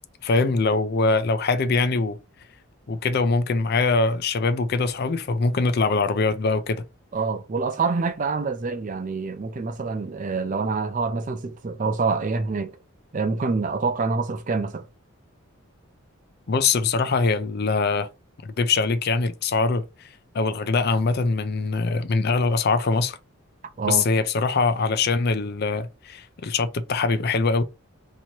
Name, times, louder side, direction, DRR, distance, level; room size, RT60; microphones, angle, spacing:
voice 1, 0.2-2.2 2.9-6.8 16.5-18.1 18.4-19.8 20.3-23.2 23.8-27.6, left 4 dB, 45° left, 0.4 m, -23 dB
voice 2, 7.1-12.8 13.1-14.9 23.8-24.0, right 4 dB, 35° right, 0.4 m, -26 dB
3.0 x 2.8 x 4.3 m
head